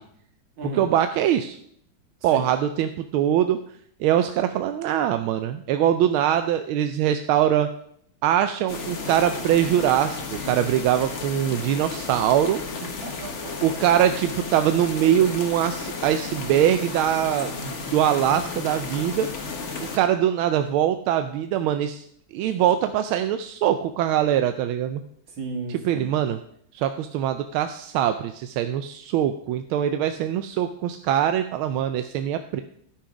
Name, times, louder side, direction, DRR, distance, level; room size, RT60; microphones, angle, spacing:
voice 1, 0.7-1.6 2.2-3.6 4.0-7.7 8.2-12.6 13.6-19.3 19.8-22.0 22.3-25.0 25.7-26.4 26.7-32.6, right 10 dB, 90° right, 8 dB, 1.4 m, -22 dB
sound 1, 8.7-20.0, left 4 dB, 40° left, 1.2 m, -33 dB
voice 2, 12.8-13.7 25.4-26.1, right 2 dB, 70° right, 1 dB, 2.6 m, -35 dB
12.5 x 5.8 x 4.9 m, 0.67 s
omnidirectional pair, 2.2 m